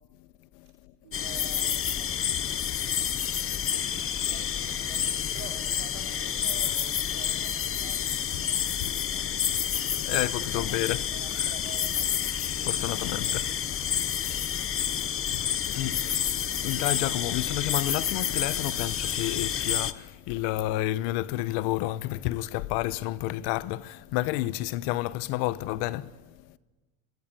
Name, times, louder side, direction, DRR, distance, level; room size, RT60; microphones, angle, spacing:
voice 1, 1.0-2.8 3.6-12.1 12.6-13.5 15.2-15.3, right 8 dB, 90° right, 3.7 m, -50 dB
sound 1, 1.1-19.9, left 8 dB, 35° left, 1.1 m, -29 dB
voice 2, 10.0-11.0 12.6-13.4 15.7-16.2 16.6-26.1, left 16 dB, 90° left, 1.1 m, -30 dB
27.0 x 22.5 x 9.1 m
cardioid pair, 120°, 40 cm